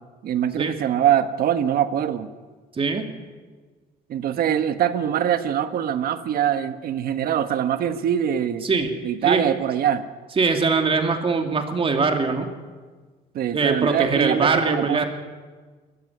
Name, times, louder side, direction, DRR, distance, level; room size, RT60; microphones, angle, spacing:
voice 1, 0.2-2.3 4.1-8.7 9.0-10.0 13.3-15.1, right 9 dB, 60° right, 10 dB, 1.4 m, -23 dB
voice 2, 10.4-12.5 13.5-15.1, right 4 dB, 35° right, 4 dB, 2.7 m, -22 dB
22.0 x 14.5 x 9.9 m, 1.4 s
cardioid pair, 110°, 17 cm